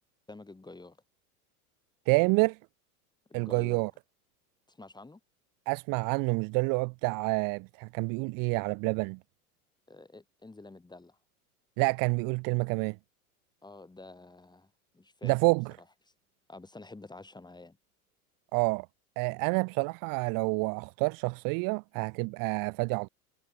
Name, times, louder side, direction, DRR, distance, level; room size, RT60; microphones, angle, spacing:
voice 1, 0.3-1.0 3.3-3.9 4.7-5.2 9.9-11.2 13.6-15.3 16.0-16.1 16.5-17.8, left 2 dB, 10° left, 3.3 m, -49 dB
voice 2, 2.1-2.6 3.3-3.9 5.7-9.2 11.8-13.0 15.2-15.7 18.5-18.9 19.2-23.1, right 31 dB, 45° right, 0.8 m, -28 dB
hypercardioid pair, 95°, 45 cm